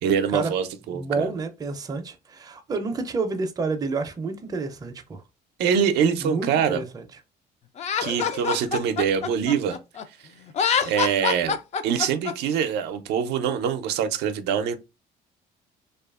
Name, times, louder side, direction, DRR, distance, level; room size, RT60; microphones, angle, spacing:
voice 1, 0.0-1.3 5.6-6.8 8.0-9.8 10.9-11.6 11.8-14.8, right 7 dB, 80° right, 0.4 m, -24 dB
voice 2, 0.9-5.2 6.2-7.0, right 3 dB, 20° right, 0.4 m, -29 dB
Laughter, 7.8-10.0 10.5-12.3, left 7 dB, 40° left, 0.4 m, -25 dB
2.7 x 2.3 x 2.3 m
cardioid pair, 110°, 17 cm